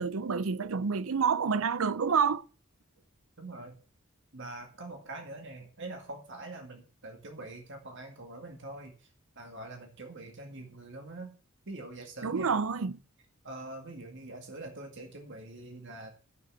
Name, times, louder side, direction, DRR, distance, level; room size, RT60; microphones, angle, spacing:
voice 1, 0.0-2.4 12.2-13.0, right 5 dB, 80° right, 0.6 m, -28 dB
voice 2, 3.4-3.8 4.3-8.9 9.4-11.3 11.7-12.6 13.4-16.1, right 2 dB, 60° right, 2.1 m, -44 dB
14.0 x 6.0 x 6.4 m
head